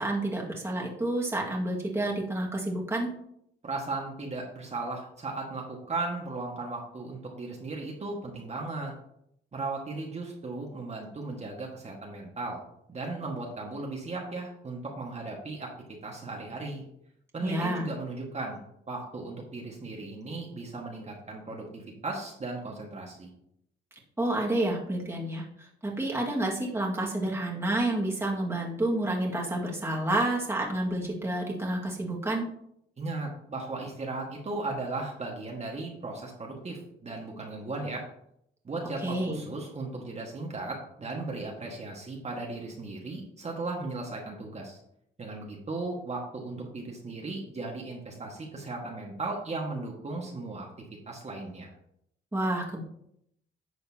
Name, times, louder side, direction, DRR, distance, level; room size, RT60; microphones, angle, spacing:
voice 1, 0.0-3.1 17.4-17.9 24.2-32.5 39.0-39.4 52.3-52.8, right 1 dB, 10° right, -2 dB, 2.0 m, -29 dB
voice 2, 3.6-8.9 9.5-12.6 12.9-15.7 16.0-16.8 17.3-18.6 18.9-23.3 33.0-38.0 38.6-44.8 45.2-50.7 51.1-51.7, right 3 dB, 35° right, -1 dB, 1.8 m, -36 dB
11.0 x 6.5 x 2.9 m, 0.73 s
cardioid pair, 90°, 20 cm